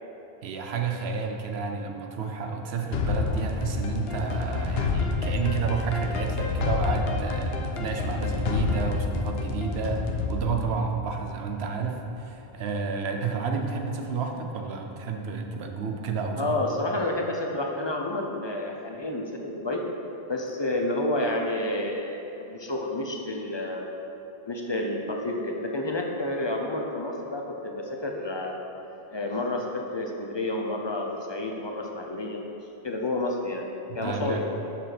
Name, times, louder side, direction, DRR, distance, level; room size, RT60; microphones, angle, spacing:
voice 1, 0.4-10.0 10.3-16.6 33.9-34.4, right 5 dB, 80° right, 3 dB, 1.0 m, -30 dB
sound 1, 2.9-11.8, left 4 dB, 75° left, 0.9 m, -29 dB
voice 2, 16.4-19.8 20.3-23.9 24.5-28.6 29.1-32.4 32.8-33.7 33.9-34.4, left 1 dB, 30° left, 1 dB, 0.6 m, -30 dB
6.9 x 5.0 x 6.0 m, 3.0 s
omnidirectional pair, 1.1 m